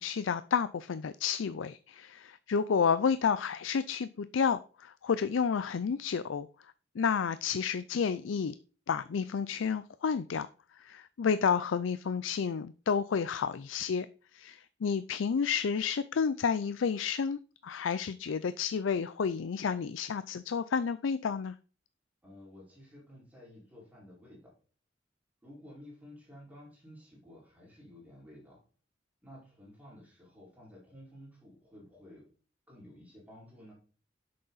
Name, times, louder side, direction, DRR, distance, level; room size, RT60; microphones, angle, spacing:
voice 1, 0.0-6.5 7.0-8.5 8.9-10.5 10.8-14.1 14.3-21.5, left 6 dB, 90° left, 0.4 m, -30 dB
voice 2, 22.2-24.5 25.4-28.6 29.2-32.3 32.7-33.7, left 1 dB, 10° right, 4.7 m, -53 dB
11.5 x 6.7 x 4.0 m
head